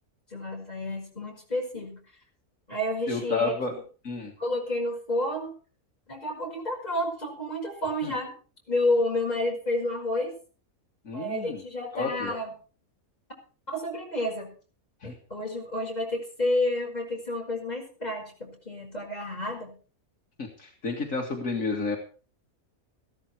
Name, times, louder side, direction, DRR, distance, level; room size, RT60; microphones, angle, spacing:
voice 1, 0.3-2.0 2.7-3.6 4.4-5.5 6.1-8.3 8.7-10.3 11.1-12.5 13.7-14.5 15.0-19.7, left 1 dB, 25° left, 0 dB, 5.6 m, -30 dB
voice 2, 3.1-3.8 4.0-4.3 8.0-8.1 11.1-11.6 11.9-12.3 15.0-15.1 20.4-22.0, left 3 dB, 65° left, 1 dB, 2.4 m, -30 dB
15.0 x 13.0 x 4.5 m, 0.37 s
omnidirectional pair, 1.5 m